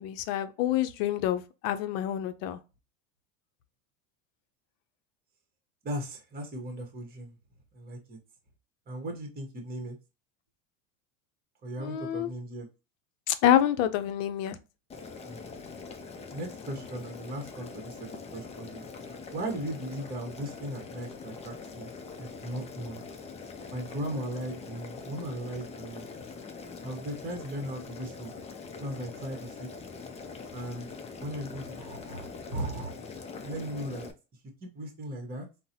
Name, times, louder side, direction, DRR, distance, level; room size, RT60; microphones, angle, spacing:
voice 1, 0.0-2.6 11.8-12.3 13.3-14.6, left 11 dB, 75° left, 0.6 m, -27 dB
voice 2, 5.8-7.4 7.7-8.2 8.9-10.0 11.6-12.7 15.2-15.6 16.3-18.0 18.3-18.8 19.3-21.9 22.2-23.0 23.7-26.1 26.8-28.3 28.8-29.7 30.5-30.9 31.2-32.9 33.4-34.1 34.6-35.5, right 1 dB, 25° right, 1.0 m, -37 dB
Boiling, 14.9-34.1, left 4 dB, 15° left, 0.4 m, -43 dB
3.8 x 2.0 x 2.7 m
supercardioid pair, 95°, 40 cm